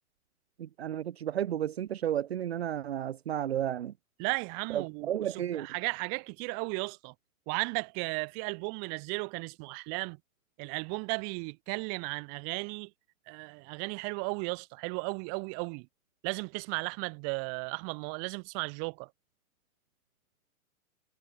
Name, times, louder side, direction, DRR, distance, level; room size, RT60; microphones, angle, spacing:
voice 1, 0.6-3.9 4.7-5.7, right 11 dB, 45° right, 1.4 m, -32 dB
voice 2, 4.2-7.1 7.5-10.2 10.6-12.9 13.3-15.9 16.2-19.1, right 40 dB or more, 20° right, 2.9 m, -35 dB
hypercardioid pair, 180°, 43 cm